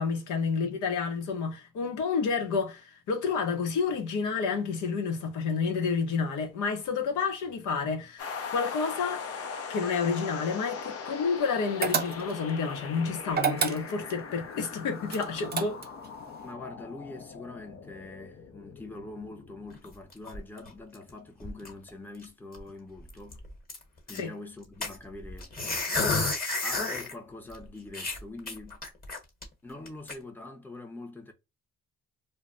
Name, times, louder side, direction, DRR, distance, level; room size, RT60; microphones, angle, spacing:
voice 1, 0.0-9.2 9.7-15.8 24.1-24.3, left 5 dB, 80° left, 0.8 m, -30 dB
sound 1, 8.2-19.8, left 5 dB, 50° left, 0.6 m, -40 dB
sound 2, 11.8-12.5 13.3-14.2 15.1-16.1, right 6 dB, 35° right, 0.5 m, -29 dB
voice 2, 16.4-23.4 24.1-26.0 26.6-28.8 29.6-31.3, left 2 dB, 5° left, 0.7 m, -44 dB
sound 3, 19.7-21.1 21.4-21.9 22.2-22.3 22.5-22.7 23.1-24.2 24.8-27.1 27.5-27.6 27.9-29.4 29.9-30.1, left 3 dB, 30° left, 1.1 m, -31 dB
2.2 x 2.1 x 3.6 m
cardioid pair, 90°, 30 cm